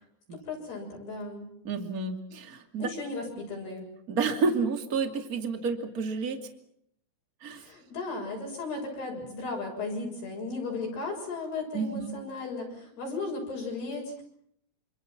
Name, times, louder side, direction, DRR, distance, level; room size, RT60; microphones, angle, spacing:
voice 1, 0.4-1.5 2.8-3.9 7.6-14.2, left 3 dB, 50° left, 0 dB, 8.6 m, -35 dB
voice 2, 1.6-2.9 4.1-6.4 7.4-7.7 11.7-12.1, right 4 dB, 30° right, 6 dB, 1.7 m, -30 dB
27.5 x 26.5 x 6.0 m, 0.69 s
omnidirectional pair, 5.9 m